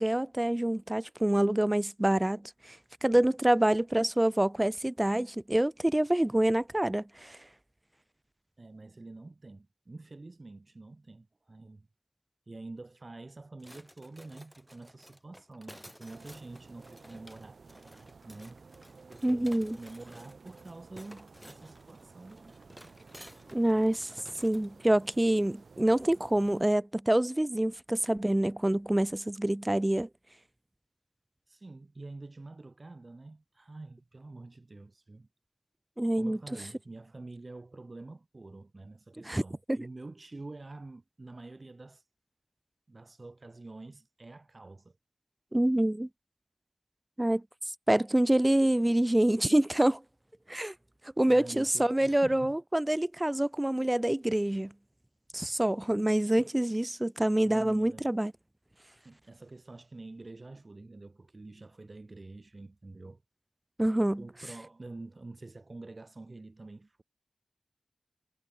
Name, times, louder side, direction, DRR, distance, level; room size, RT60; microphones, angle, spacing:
voice 1, 0.0-2.4 2.7-7.4 19.2-19.8 23.5-24.1 24.4-30.1 36.0-36.4 39.3-39.4 39.7-39.8 45.5-46.1 47.2-47.4 47.9-50.0 50.5-50.7 51.2-54.7 55.3-58.3 63.8-64.2, right 1 dB, 15° right, 0.5 m, -26 dB
voice 2, 8.6-11.9 12.5-17.6 18.2-18.7 19.1-22.5 31.5-35.3 36.1-42.1 42.9-45.0 51.3-52.6 56.2-56.5 57.4-58.1 59.0-63.2 64.2-67.0, right 2 dB, 40° right, 2.6 m, -47 dB
sound 1, 13.6-24.7, equal, ahead, 2.7 m, -54 dB
sound 2, 16.1-26.6, right 4 dB, 85° right, 4.2 m, -54 dB
wide cardioid pair, 95°, 0 cm